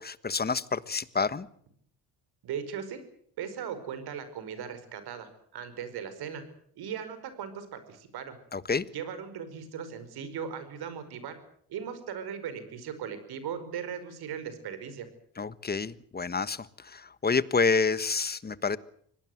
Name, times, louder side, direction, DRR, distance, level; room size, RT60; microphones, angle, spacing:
voice 1, 0.0-1.5 8.5-8.8 15.4-18.8, left 4 dB, 25° left, 16 dB, 1.4 m, -28 dB
voice 2, 2.4-3.0 3.4-6.4 6.8-8.4 8.9-11.4 11.7-15.1, right 7 dB, 75° right, 11 dB, 5.1 m, -38 dB
25.0 x 18.5 x 7.9 m, 0.65 s
supercardioid pair, 80°, 39 cm